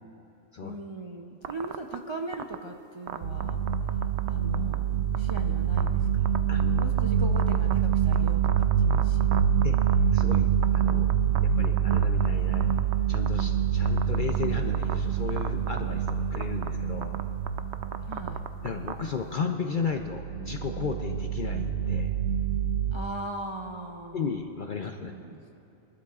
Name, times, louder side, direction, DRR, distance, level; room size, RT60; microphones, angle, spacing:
voice 1, 0.6-3.6 4.3-6.5 6.8-9.3 18.1-18.4 22.9-24.4 25.0-25.6, right 2 dB, 40° right, 1 dB, 0.4 m, -39 dB
sound 1, 1.4-1.9 2.3-2.5 3.1-4.3 4.5-4.7 5.1-5.4 5.8-5.9 6.2-7.0 7.4-10.4 10.6-11.4 11.6-12.3 12.5-13.4 13.8-14.4 14.7-14.9 15.3-15.8 16.1-16.2 16.3-16.7 17.0-18.9, right 11 dB, 65° right, 0.7 m, -34 dB
sound 2, 3.2-19.1 19.8-23.0, right 8 dB, 80° right, 1.1 m, -26 dB
voice 2, 6.5-6.8 9.6-9.8 10.1-10.5 10.7-11.1 11.4-12.7 13.1-17.2 18.6-22.2 24.1-25.1, left 5 dB, 55° left, 4 dB, 0.6 m, -34 dB
23.0 x 12.5 x 2.4 m, 2.9 s
omnidirectional pair, 1.4 m